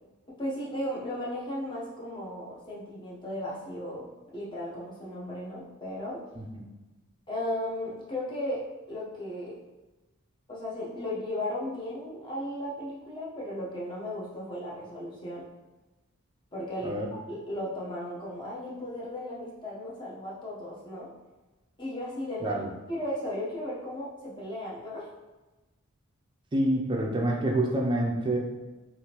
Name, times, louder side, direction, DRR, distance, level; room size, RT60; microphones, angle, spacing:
voice 1, 0.4-6.2 7.3-9.6 10.5-15.5 16.5-16.9 17.3-21.1 21.8-22.6 22.9-25.1, left 1 dB, 20° left, -6 dB, 0.7 m, -35 dB
voice 2, 26.5-28.4, right 1 dB, 20° right, 0 dB, 0.4 m, -27 dB
3.5 x 2.5 x 2.9 m, 1.1 s
head